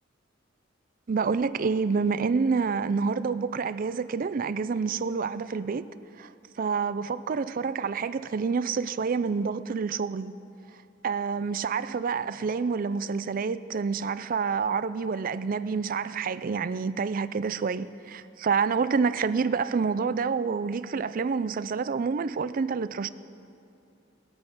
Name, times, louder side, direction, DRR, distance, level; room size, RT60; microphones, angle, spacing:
voice 1, 1.1-5.8 6.2-6.3 6.6-10.3 11.0-23.1, right 5 dB, 45° right, 0.4 m, -28 dB
20.0 x 8.7 x 6.1 m
head